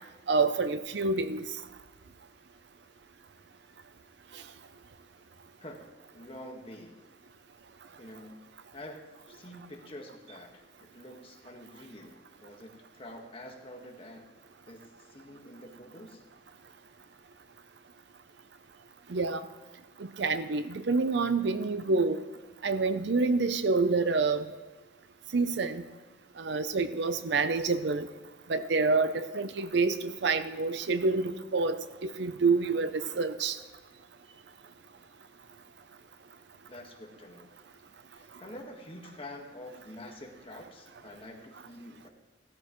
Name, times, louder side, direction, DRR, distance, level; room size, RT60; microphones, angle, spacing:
voice 1, 0.3-1.5 19.1-19.4 20.2-22.2 22.6-24.4 25.3-25.8 26.4-28.1 28.5-33.6, right 4 dB, 65° right, 12 dB, 0.6 m, -27 dB
voice 2, 5.6-7.0 8.0-8.4 8.7-12.1 12.4-14.3 14.6-16.2 36.7-37.5 38.1-42.1, left 1 dB, 30° left, 1 dB, 1.6 m, -47 dB
16.5 x 13.0 x 3.1 m, 1.3 s
head